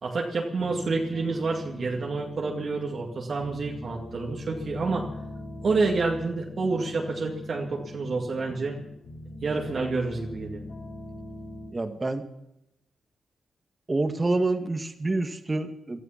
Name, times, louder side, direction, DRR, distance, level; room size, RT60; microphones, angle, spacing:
voice 1, 0.0-5.1 5.6-8.8 9.4-10.6, right 3 dB, 60° right, -1 dB, 2.3 m, -28 dB
sound 1, 0.6-11.7, left 2 dB, 70° left, 5.7 m, -41 dB
voice 2, 11.7-12.2 13.9-16.0, right 2 dB, 30° right, 8 dB, 2.0 m, -27 dB
18.5 x 12.5 x 5.9 m, 0.85 s
cardioid pair, 60°, 0 cm